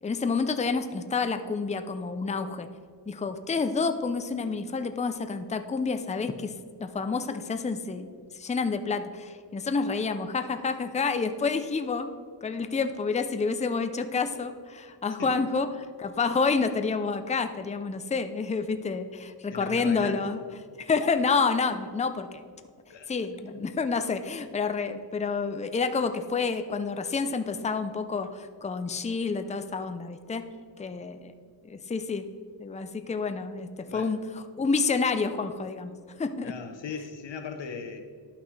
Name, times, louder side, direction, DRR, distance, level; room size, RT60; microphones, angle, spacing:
voice 1, 0.0-2.7 3.1-6.5 6.8-8.1 8.3-12.1 12.4-20.4 20.8-22.4 23.1-30.4 30.8-31.3 31.7-32.3 32.6-35.9 36.2-36.5, left 4 dB, 15° left, 8 dB, 0.4 m, -29 dB
voice 2, 19.5-20.3 22.9-23.1 33.9-34.1 36.4-38.0, left 5 dB, 75° left, 6 dB, 0.9 m, -38 dB
11.5 x 5.8 x 3.2 m, 2.1 s
wide cardioid pair, 75°, 44 cm